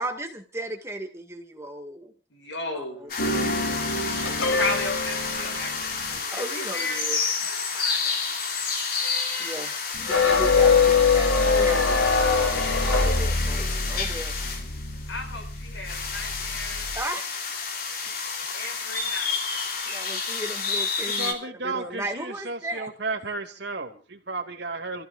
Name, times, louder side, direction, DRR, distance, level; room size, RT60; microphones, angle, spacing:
voice 1, 0.0-2.1 2.7-2.8 3.2-3.5 6.3-7.2 9.4-9.7 10.0-14.3 16.9-17.3 19.9-21.3 21.6-22.9, right 1 dB, 15° right, 4 dB, 1.9 m, -35 dB
voice 2, 2.3-3.3 4.4-8.3 15.1-16.9 18.5-19.4, left 2 dB, 70° left, 4 dB, 6.6 m, -35 dB
sound 1, 3.1-21.3, left 5 dB, 45° left, 3.3 m, -30 dB
sound 2, 3.2-6.2 9.9-17.0, left 4 dB, 85° left, 3.4 m, -24 dB
voice 3, 21.1-25.0, right 3 dB, 55° right, 5 dB, 2.5 m, -33 dB
29.5 x 15.5 x 2.5 m, 0.33 s
head